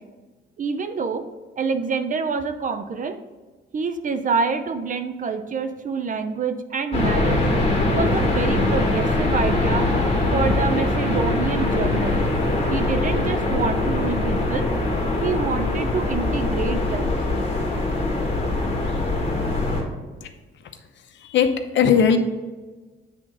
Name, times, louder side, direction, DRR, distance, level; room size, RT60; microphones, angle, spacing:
voice 1, 0.6-1.2 1.6-3.2 3.7-7.4 7.9-9.9 10.3-12.3 12.7-14.7 15.2-17.2, right 5 dB, 40° right, 9 dB, 0.6 m, -26 dB
sound 1, 6.9-19.8, left 2 dB, 30° left, 1.9 m, -22 dB
voice 2, 21.1-22.2, left 7 dB, 70° left, 7 dB, 0.8 m, -19 dB
7.7 x 3.7 x 4.9 m, 1.2 s
cardioid pair, 90°, 20 cm